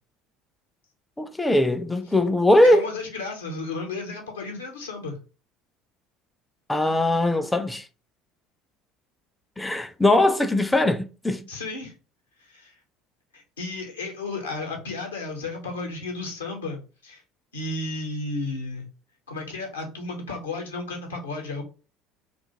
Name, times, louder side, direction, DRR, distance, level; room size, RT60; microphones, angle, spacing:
voice 1, 1.2-2.9 6.7-7.9 9.6-11.4, left 1 dB, 10° left, 0.4 m, -20 dB
voice 2, 2.6-5.2 11.5-11.9 12.4-12.7 13.3-17.2 17.5-18.9 19.3-21.6, left 3 dB, 75° left, 0.8 m, -33 dB
2.4 x 2.4 x 2.8 m
figure-of-eight pair, 65°, 0 cm